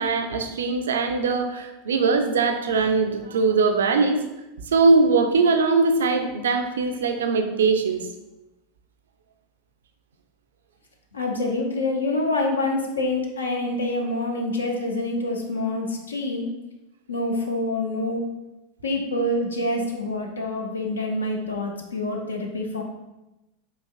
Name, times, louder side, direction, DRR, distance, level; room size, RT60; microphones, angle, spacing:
voice 1, 0.0-4.2 4.7-8.0, right 4 dB, 75° right, 6 dB, 0.3 m, -21 dB
voice 2, 11.1-16.5 17.1-18.3 18.8-22.8, left 2 dB, 80° left, 1 dB, 0.5 m, -26 dB
4.1 x 2.8 x 2.3 m, 0.98 s
figure-of-eight pair, 85°, 0 cm